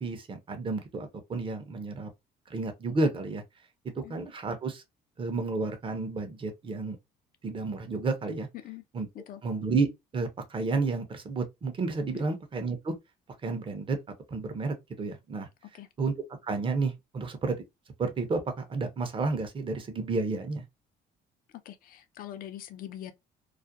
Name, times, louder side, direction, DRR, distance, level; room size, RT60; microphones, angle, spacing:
voice 1, 0.0-2.1 2.5-3.4 4.0-4.8 5.2-7.0 7.4-8.5 8.9-9.1 9.4-12.9 13.4-14.0 14.3-15.5 16.0-16.1 16.4-17.6 18.0-20.6, right 3 dB, 30° right, 0.6 m, -31 dB
voice 2, 21.5-23.1, left 12 dB, 55° left, 0.5 m, -43 dB
2.4 x 2.1 x 2.6 m
cardioid pair, 110°, 17 cm